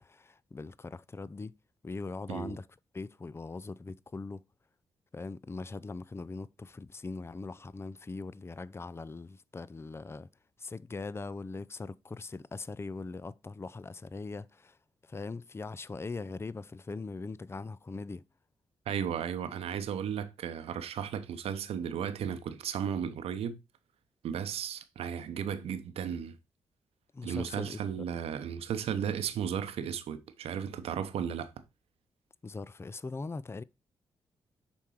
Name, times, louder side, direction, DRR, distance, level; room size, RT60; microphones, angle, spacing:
voice 1, 0.0-1.6 1.8-2.7 2.9-4.4 5.1-10.3 10.6-14.8 15.0-18.2 27.1-27.8 32.4-33.6, left 3 dB, 25° left, 0.5 m, -41 dB
voice 2, 18.9-23.6 24.2-26.4 27.2-31.5, right 8 dB, 75° right, 0.9 m, -35 dB
7.1 x 4.5 x 4.8 m
hypercardioid pair, 45°, 10 cm